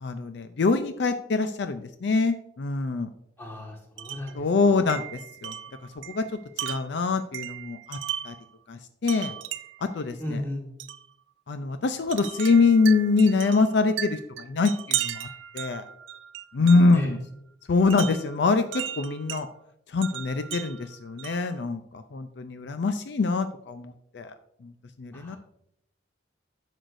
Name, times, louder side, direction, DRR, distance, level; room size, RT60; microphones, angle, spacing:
voice 1, 0.0-3.1 4.3-5.6 6.0-8.0 8.2-8.3 8.7-9.4 9.8-10.4 11.5-15.3 15.5-15.9 16.5-17.2 17.7-19.5 19.9-24.3 24.6-24.7 25.0-25.4, left 4 dB, 65° left, 9 dB, 0.4 m, -24 dB
voice 2, 3.4-4.4 10.2-10.6 16.9-17.1 25.1-25.4, left 1 dB, 15° left, 0 dB, 1.6 m, -34 dB
Wind chime, 4.0-4.4 4.9-8.5 9.1-9.9 10.8-11.1 12.1-17.0 17.9-19.5 20.0-21.5, right 11 dB, 90° right, 0.4 m, -36 dB
10.0 x 6.4 x 2.6 m, 0.75 s
head